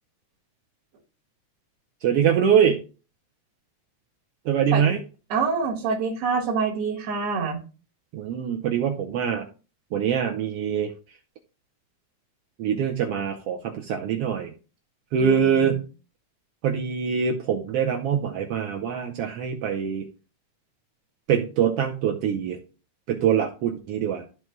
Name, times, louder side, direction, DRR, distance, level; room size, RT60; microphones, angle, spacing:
voice 1, 2.0-2.8 4.4-5.0 8.1-9.5 9.9-10.9 12.6-14.5 15.1-15.8 16.6-20.0 21.3-22.6 23.1-24.2, right 8 dB, 75° right, 2 dB, 1.5 m, -24 dB
voice 2, 5.3-7.6 15.2-15.8, right 5 dB, 55° right, -3 dB, 2.2 m, -26 dB
13.5 x 4.6 x 2.2 m, 0.34 s
omnidirectional pair, 3.4 m